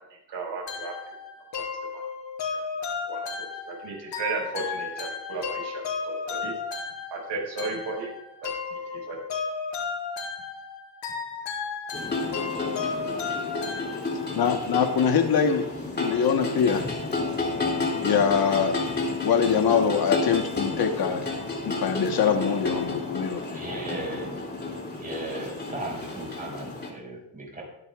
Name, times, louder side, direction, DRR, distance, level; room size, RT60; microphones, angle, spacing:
voice 1, 0.3-0.9 1.6-1.7 1.9-2.0 3.1-6.5 7.1-8.1 8.4-9.2, right 3 dB, 70° right, -1 dB, 5.5 m, -35 dB
sound 1, 0.7-14.5, left 5 dB, 80° left, 5.3 m, -34 dB
sound 2, 11.9-26.9, left 3 dB, 20° left, 2.7 m, -31 dB
voice 2, 14.3-15.7 16.0-16.9 18.0-18.7 19.2-21.2 21.6-23.6, left 7 dB, 55° left, 5 dB, 1.3 m, -23 dB
voice 3, 23.5-24.5 25.0-27.6, right 1 dB, 20° right, -1 dB, 5.3 m, -36 dB
23.0 x 9.4 x 2.4 m, 0.83 s
cardioid pair, 125°, 44 cm